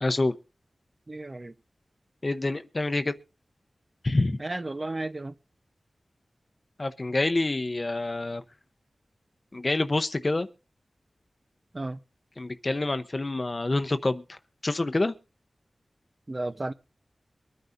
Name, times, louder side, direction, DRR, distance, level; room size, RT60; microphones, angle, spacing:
voice 1, 0.0-0.4 2.2-3.2 4.0-4.4 6.8-8.4 9.5-10.5 12.4-14.4 14.6-15.1, left 2 dB, 40° left, 0.8 m, -27 dB
voice 2, 1.1-1.5 4.4-5.3 11.7-12.0 16.3-16.7, right 2 dB, 35° right, 0.8 m, -33 dB
23.5 x 9.5 x 2.7 m
wide cardioid pair, 65°, 0 cm